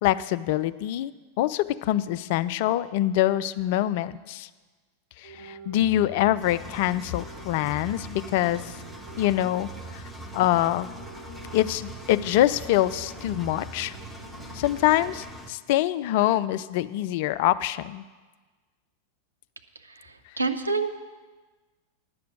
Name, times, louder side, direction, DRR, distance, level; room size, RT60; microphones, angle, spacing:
voice 1, 0.0-4.5 5.2-8.7 9.2-10.0 10.3-10.9 11.5-13.9 14.5-18.0, left 13 dB, 50° left, 15 dB, 0.3 m, -25 dB
sound 1, 5.2-15.1, right 4 dB, 50° right, 3.0 m, -45 dB
Engine, 6.4-15.5, left 1 dB, 5° left, 1.0 m, -42 dB
voice 2, 19.9-21.0, right 4 dB, 80° right, 7 dB, 0.7 m, -28 dB
10.0 x 6.7 x 8.1 m, 1.3 s
figure-of-eight pair, 90°, 0 cm